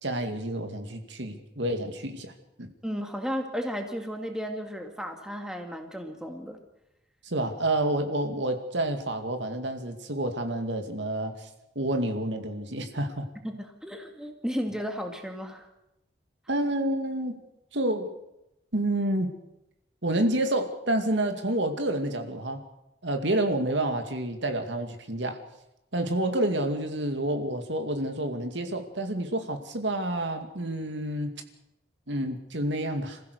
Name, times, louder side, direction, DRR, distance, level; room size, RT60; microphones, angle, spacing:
voice 1, 0.0-2.3 2.6-2.7 7.2-11.5 11.8-13.3 16.5-17.4 17.7-18.1 18.7-19.3 20.0-22.6 23.0-25.4 25.9-31.3 32.1-33.2, right 1 dB, 75° right, 6 dB, 2.4 m, -29 dB
voice 2, 2.8-6.6 13.4-15.7, equal, 5° right, 3 dB, 2.0 m, -34 dB
27.5 x 15.5 x 6.7 m, 0.89 s
head